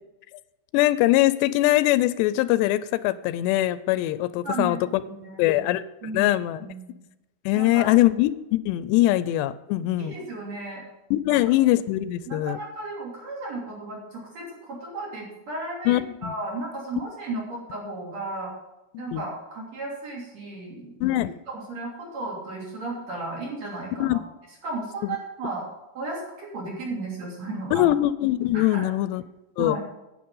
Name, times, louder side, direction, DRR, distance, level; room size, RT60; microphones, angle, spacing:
voice 1, 0.7-5.0 5.4-5.8 6.1-6.6 7.5-10.1 11.1-12.6 15.9-16.3 19.1-19.2 21.0-21.3 24.0-24.2 25.0-25.2 27.7-29.2 29.6-29.8, left 15 dB, 85° left, 15 dB, 2.7 m, -22 dB
voice 2, 4.4-5.6 6.0-7.0 7.5-7.9 9.0-9.1 9.8-10.8 11.3-11.4 12.3-15.9 16.2-18.5 19.0-21.0 21.5-24.2 24.6-25.7 25.9-27.9 28.5-28.9 29.6-29.9, right 2 dB, 40° right, -3 dB, 3.8 m, -34 dB
9.5 x 8.8 x 5.5 m, 0.97 s
omnidirectional pair, 4.9 m